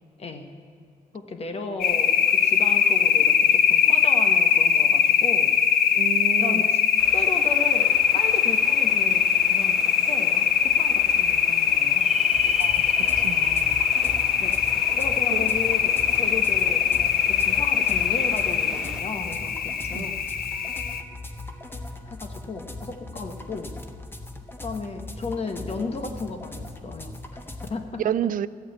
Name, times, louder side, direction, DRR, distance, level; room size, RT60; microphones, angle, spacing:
voice 1, 1.1-5.5 6.4-6.8 7.1-12.1 14.4-14.6 15.0-20.2 22.0-23.7 24.6-27.2 27.6-28.0, left 3 dB, 40° left, 5 dB, 1.4 m, -35 dB
sound 1, 1.8-21.0, left 8 dB, 80° left, 0.8 m, -21 dB
voice 2, 5.9-6.7 12.6-12.8 13.2-13.8 15.3-15.4 19.9-20.1 28.0-28.5, right 10 dB, 65° right, 17 dB, 0.4 m, -29 dB
sound 2, 7.0-19.0, right 1 dB, 5° right, 1.2 m, -41 dB
sound 3, 12.4-27.7, left 2 dB, 15° left, 1.1 m, -39 dB
14.0 x 8.6 x 8.0 m, 2.3 s
cardioid pair, 115°, 15 cm